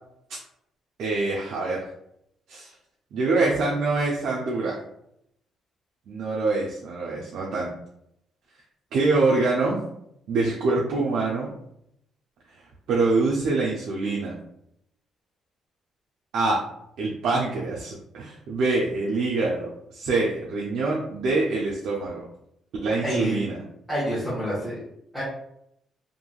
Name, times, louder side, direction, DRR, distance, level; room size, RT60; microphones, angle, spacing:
voice 1, 1.0-1.9 2.5-2.7 3.1-4.8 6.1-7.7 8.9-9.8 10.3-11.5 12.9-14.3 16.3-16.6 17.0-22.3 22.8-23.6, right 3 dB, 75° right, -3 dB, 0.5 m, -25 dB
voice 2, 23.0-23.4 23.9-24.8 25.1-25.2, right 1 dB, 5° left, -9 dB, 1.1 m, -27 dB
3.0 x 2.5 x 2.3 m, 0.77 s
cardioid pair, 90°, 0 cm